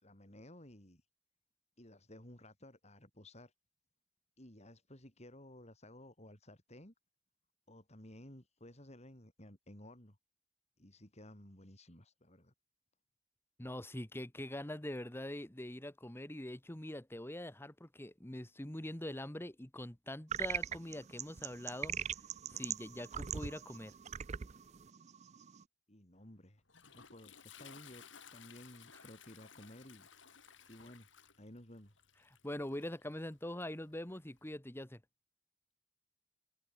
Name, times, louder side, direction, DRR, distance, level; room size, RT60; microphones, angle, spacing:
voice 1, 0.0-1.0 1.8-3.5 4.4-6.9 7.7-10.2 10.8-12.5 25.9-26.6 26.9-28.0 28.3-30.1 30.7-31.1 31.4-32.0, left 1 dB, 35° left, 5.9 m, -55 dB
voice 2, 13.6-21.9 22.5-23.9 32.4-35.0, left 1 dB, 10° left, 1.4 m, -43 dB
sound 1, 20.3-25.6, right 8 dB, 35° right, 0.5 m, -41 dB
Toilet flush, 26.2-34.5, left 7 dB, 75° left, 5.4 m, -59 dB
head